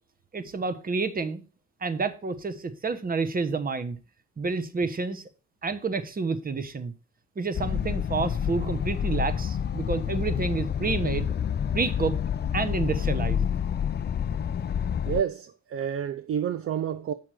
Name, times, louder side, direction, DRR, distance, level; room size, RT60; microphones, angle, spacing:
voice 1, 0.3-1.4 1.8-4.0 4.4-5.2 5.6-6.9 7.4-11.3 11.7-12.2 12.5-13.5, right 4 dB, 30° right, 1.1 m, -29 dB
sound 1, 7.5-15.2, left 8 dB, 35° left, 0.5 m, -28 dB
voice 2, 15.1-17.1, right 8 dB, 50° right, 0.5 m, -29 dB
7.6 x 5.8 x 4.9 m
cardioid pair, 90°, 30 cm